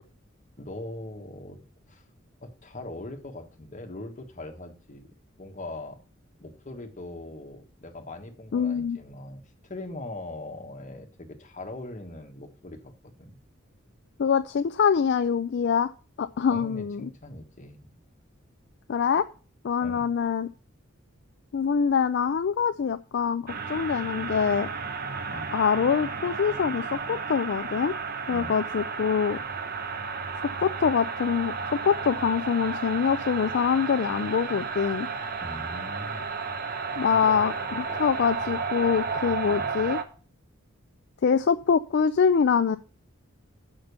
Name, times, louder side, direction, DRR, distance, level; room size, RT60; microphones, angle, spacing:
voice 1, 0.6-1.6 1.9-2.0 2.4-5.1 5.4-6.0 6.4-12.9 13.2-13.4 16.5-17.9 19.8-20.1 25.3-25.5 28.3-28.6 35.4-36.2 37.1-38.0 39.4-39.7, left 1 dB, 40° left, 4 dB, 1.4 m, -41 dB
voice 2, 8.5-9.0 14.2-15.9 16.2-17.1 18.9-19.3 19.6-20.5 21.5-24.7 25.5-27.9 28.3-29.4 30.6-35.1 37.0-40.0 41.2-42.8, left 6 dB, 55° left, 11 dB, 0.4 m, -24 dB
sound 1, 23.5-40.0, right 4 dB, 50° right, 0.9 m, -33 dB
6.6 x 5.8 x 6.7 m, 0.38 s
head